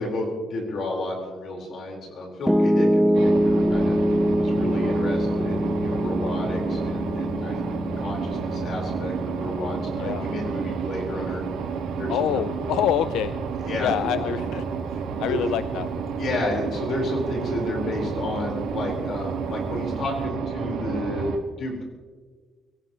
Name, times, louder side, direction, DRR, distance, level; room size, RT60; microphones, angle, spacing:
voice 1, 0.0-4.0 4.4-11.4 12.0-12.5 13.6-14.2 15.2-15.5 16.2-21.9, left 1 dB, 50° left, 0 dB, 4.5 m, -31 dB
Piano, 2.5-14.6, equal, ahead, 0.4 m, -25 dB
sound 1, 3.1-21.4, right 6 dB, 75° right, 1.7 m, -31 dB
voice 2, 12.1-13.3 13.8-14.6 15.2-15.9, left 11 dB, 85° left, 12 dB, 0.5 m, -26 dB
24.0 x 17.0 x 3.1 m, 1.5 s
cardioid pair, 160°, 0 cm